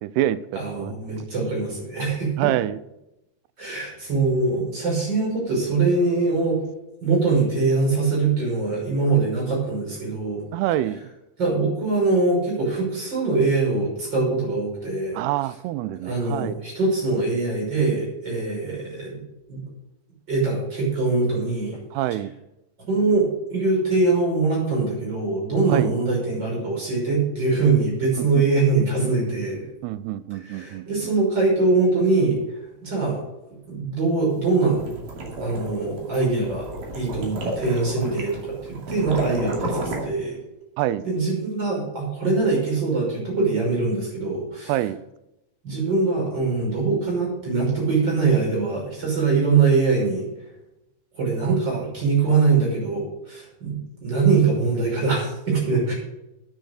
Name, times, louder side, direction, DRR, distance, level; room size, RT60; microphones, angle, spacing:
voice 1, 0.0-0.9 2.4-2.8 10.5-11.0 15.1-16.6 21.9-22.3 25.7-25.9 28.2-28.3 29.8-30.8 40.8-41.1 44.7-45.0 51.4-51.6 52.3-52.4, right 13 dB, 90° right, 15 dB, 2.6 m, -26 dB
voice 2, 0.5-2.3 3.6-6.6 7.0-10.4 11.4-15.2 16.0-19.2 19.5-19.6 20.3-21.8 22.9-29.7 30.4-32.4 32.8-33.2 33.7-34.8 35.4-36.7 36.9-40.4 41.0-44.7 45.6-50.2 51.1-55.9, right 3 dB, 25° right, -2 dB, 6.2 m, -23 dB
sound 1, 34.5-40.0, right 1 dB, 60° right, 4.0 m, -32 dB
10.0 x 9.3 x 6.4 m, 0.90 s
omnidirectional pair, 4.5 m